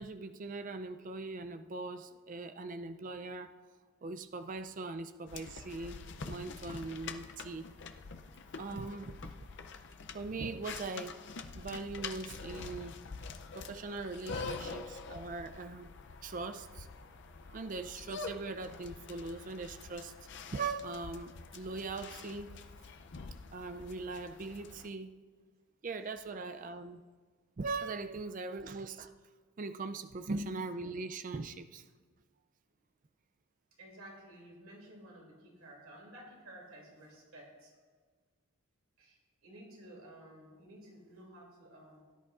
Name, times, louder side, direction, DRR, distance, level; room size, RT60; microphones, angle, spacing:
voice 1, 0.0-3.5 4.0-6.0 6.2-7.7 8.6-9.3 10.1-11.2 11.6-12.9 13.5-15.9 16.2-16.9 17.5-20.1 20.5-22.5 23.5-25.2 25.8-27.0 27.6-29.1 29.6-31.8, right 3 dB, 35° right, 9 dB, 0.4 m, -40 dB
sound 1, 5.3-24.9, left 4 dB, 55° left, 0.5 m, -46 dB
voice 2, 33.8-37.8 39.0-42.1, right 1 dB, 75° right, -2 dB, 2.8 m, -53 dB
17.0 x 11.0 x 2.5 m, 1.5 s
head